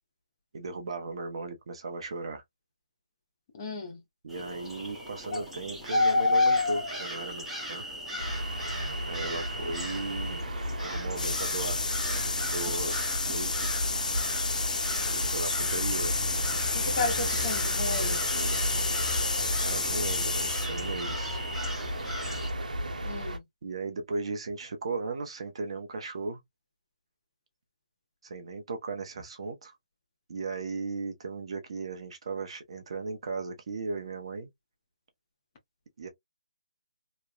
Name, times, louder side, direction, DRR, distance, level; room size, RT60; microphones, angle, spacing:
voice 1, 0.5-2.4 4.2-7.8 9.1-10.4 10.8-11.8 12.1-13.0 13.3-13.5 15.1-16.2 18.0-18.6 19.6-21.4 23.6-26.4 28.2-29.8 30.3-34.5 36.0-36.1, right 3 dB, 45° right, 0.8 m, -36 dB
voice 2, 3.5-4.0 16.7-18.2 23.0-23.4, left 3 dB, 25° left, 0.9 m, -33 dB
sound 1, 4.3-22.5, left 2 dB, 5° right, 0.9 m, -34 dB
sound 2, 8.2-23.4, equal, 80° right, 0.9 m, -34 dB
sound 3, 11.1-20.7, left 4 dB, 80° left, 0.4 m, -31 dB
3.0 x 2.2 x 2.3 m
hypercardioid pair, 165°, 4 cm